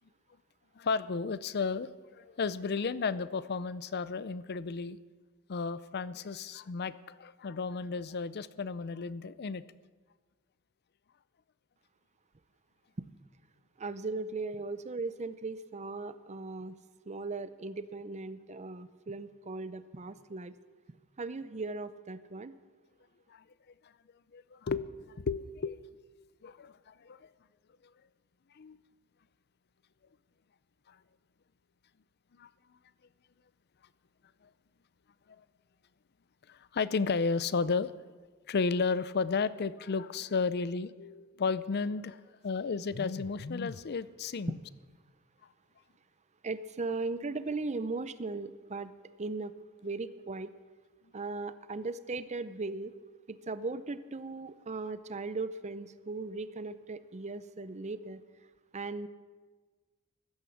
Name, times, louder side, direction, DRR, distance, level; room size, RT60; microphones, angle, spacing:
voice 1, 0.8-5.0 5.5-9.6 23.3-23.4 24.3-24.9 25.2-25.8 26.4-27.2 28.6-28.8 30.9-31.0 32.4-32.5 36.5-37.9 38.5-44.6, left 4 dB, 50° left, 17 dB, 0.5 m, -33 dB
voice 2, 13.8-16.8 17.1-20.5 21.2-22.5 46.4-48.9 49.2-49.5 49.8-50.5 51.1-52.9 53.3-58.2 58.7-59.1, right 3 dB, 30° right, 13 dB, 0.6 m, -38 dB
15.5 x 12.0 x 7.1 m, 1.4 s
head